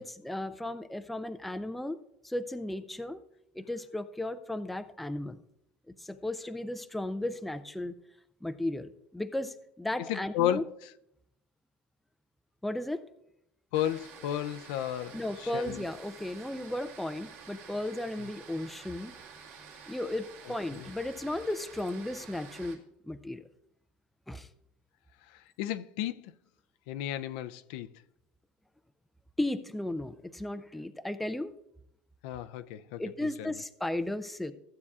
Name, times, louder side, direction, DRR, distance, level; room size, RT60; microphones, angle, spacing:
voice 1, 0.0-2.0 2.2-3.2 3.5-5.4 5.9-7.9 8.4-10.6 12.6-13.1 15.1-19.2 19.9-23.5 24.3-24.5 29.4-31.5 33.0-34.5, left 1 dB, ahead, 0.3 m, -35 dB
voice 2, 10.1-10.9 13.7-15.9 20.7-20.9 25.3-26.3 26.9-27.9 32.2-33.6, left 11 dB, 75° left, 0.4 m, -34 dB
sound 1, 13.7-22.8, right 6 dB, 50° right, 1.8 m, -50 dB
15.0 x 8.3 x 2.4 m
cardioid pair, 160°, 4 cm